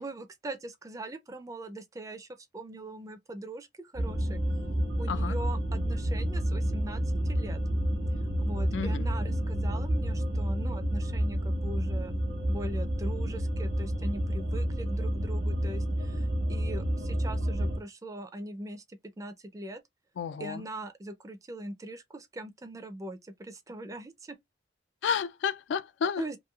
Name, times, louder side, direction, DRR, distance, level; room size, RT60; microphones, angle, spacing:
voice 1, 0.0-4.4 5.0-7.6 8.4-19.8 20.4-24.4 26.2-26.4, right 1 dB, 20° right, 0.4 m, -41 dB
sound 1, 4.0-17.8, equal, 60° right, 0.7 m, -29 dB
voice 2, 8.7-9.1 20.2-20.6 25.0-26.4, left 6 dB, 80° left, 0.3 m, -31 dB
3.0 x 2.5 x 2.3 m
head